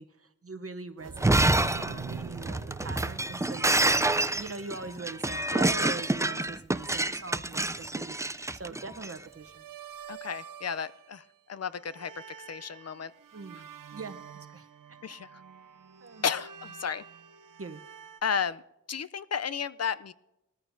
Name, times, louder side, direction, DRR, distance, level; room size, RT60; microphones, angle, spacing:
voice 1, 0.0-9.7 13.3-14.2 14.5-15.0 16.0-16.2 17.6-17.8, right 3 dB, 45° right, 9 dB, 0.8 m, -42 dB
sound 1, 1.0-5.2 9.0-11.4 11.7-18.2, right 7 dB, 85° right, 0.6 m, -46 dB
Shatter, 1.1-9.1, right 2 dB, 10° right, 0.3 m, -27 dB
voice 2, 10.1-12.1 12.5-13.1 15.0-15.4 16.2-17.0 18.2-18.6 18.9-20.1, left 7 dB, 55° left, 15 dB, 0.5 m, -33 dB
20.0 x 14.0 x 2.6 m, 0.91 s
wide cardioid pair, 70°, 32 cm